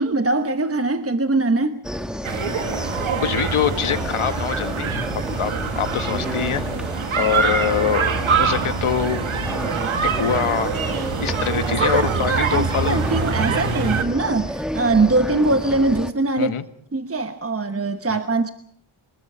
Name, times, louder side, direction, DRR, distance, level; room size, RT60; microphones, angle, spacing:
voice 1, 0.0-1.8 11.8-16.5 16.9-18.5, right 3 dB, 30° right, 8 dB, 1.1 m, -22 dB
sound 1, 1.8-16.1, equal, ahead, 1.2 m, -30 dB
sound 2, 2.2-14.0, right 5 dB, 70° right, 1.8 m, -25 dB
voice 2, 3.2-4.9 5.3-6.6 7.2-9.2 10.2-10.7 11.2-13.0 16.4-16.6 18.1-18.2, left 8 dB, 80° left, 10 dB, 1.6 m, -24 dB
24.5 x 21.5 x 5.6 m, 0.67 s
wide cardioid pair, 110°, 49 cm